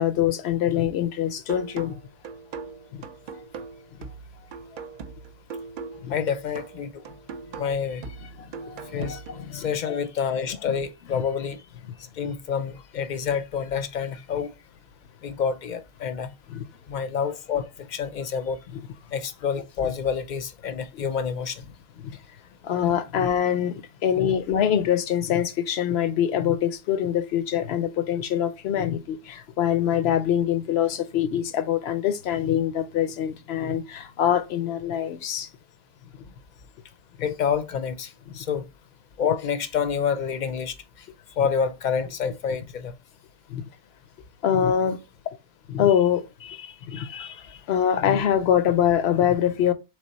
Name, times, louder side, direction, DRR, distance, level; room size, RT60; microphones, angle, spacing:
voice 1, 0.0-2.0 2.9-3.0 4.0-4.1 6.0-6.1 7.5-7.6 8.4-9.1 9.4-9.8 12.2-12.3 16.5-16.6 18.7-18.8 22.0-22.2 22.6-35.5 43.5-43.6 44.4-45.0 45.7-49.7, left 9 dB, 90° left, 0.9 m, -24 dB
sound 1, 1.5-9.5, right 5 dB, 60° right, 0.6 m, -40 dB
voice 2, 6.1-7.0 7.6-8.3 8.9-11.6 12.2-14.5 15.2-16.3 16.9-18.6 19.1-21.6 24.8-24.9 37.2-38.7 39.2-41.1 41.4-42.9, left 7 dB, 55° left, 0.6 m, -28 dB
3.6 x 3.3 x 4.0 m
omnidirectional pair, 1.0 m